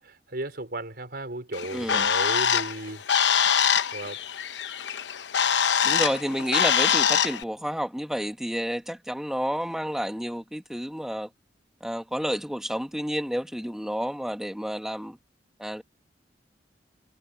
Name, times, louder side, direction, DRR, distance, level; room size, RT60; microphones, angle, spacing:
voice 1, 0.0-3.0 3.9-4.2, right 1 dB, 60° right, 4.9 m, -35 dB
Bird, 1.5-7.4, left 8 dB, 90° left, 0.9 m, -24 dB
voice 2, 1.7-2.1 5.8-11.3 11.8-15.2 15.6-15.8, equal, 5° right, 1.8 m, -30 dB
head